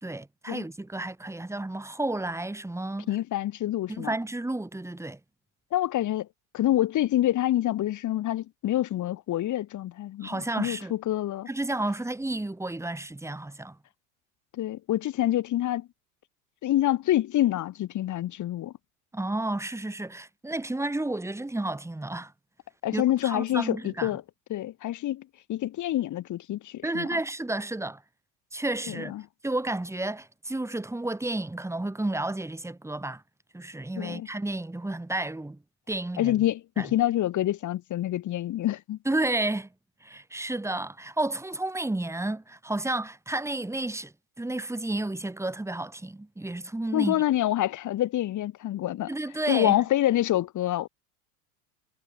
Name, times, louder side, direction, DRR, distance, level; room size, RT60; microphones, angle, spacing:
voice 1, 0.0-3.1 3.9-5.2 10.2-10.9 11.5-13.8 19.1-22.3 22.9-24.1 26.8-28.0 28.5-29.1 29.4-33.2 33.5-35.6 35.9-36.4 36.8-36.9 39.1-39.7 40.0-47.2 49.1-49.8, right 2 dB, 5° right, 5.7 m, -31 dB
voice 2, 3.1-4.2 5.7-6.3 6.5-11.5 14.5-15.9 16.6-18.7 22.8-24.2 24.5-27.1 28.9-29.2 34.0-34.3 36.2-39.0 46.9-49.1 49.5-50.9, left 13 dB, 40° left, 3.6 m, -27 dB
hypercardioid pair, 100°, 44 cm